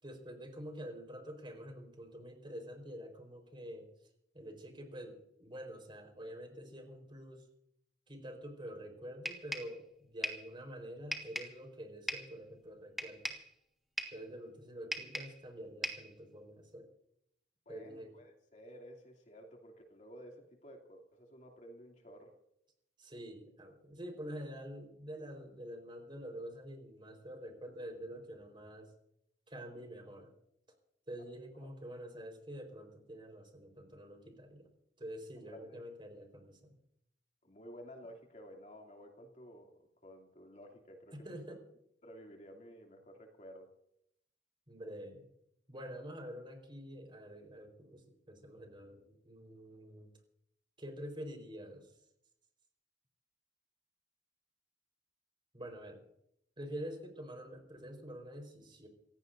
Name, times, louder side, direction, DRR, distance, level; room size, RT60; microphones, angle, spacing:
voice 1, 0.0-3.9 4.3-7.4 8.1-13.2 14.1-16.9 17.7-18.1 23.0-28.9 29.5-30.3 31.1-34.6 35.0-36.7 41.1-41.6 44.7-45.2 45.7-50.1 50.8-51.9 55.5-56.0 56.6-58.9, equal, 30° right, 4 dB, 4.3 m, -47 dB
sound 1, 9.3-9.8 10.2-10.5 11.1-11.6 12.1-12.4 13.0-13.5 14.0-14.3 14.9-15.4 15.8-16.1, equal, ahead, 1.7 m, -39 dB
voice 2, 17.7-22.4 31.6-31.7 35.5-35.9 37.4-41.6 42.0-43.7, equal, 45° left, 1 dB, 2.7 m, -53 dB
28.0 x 16.0 x 2.6 m, 0.77 s
head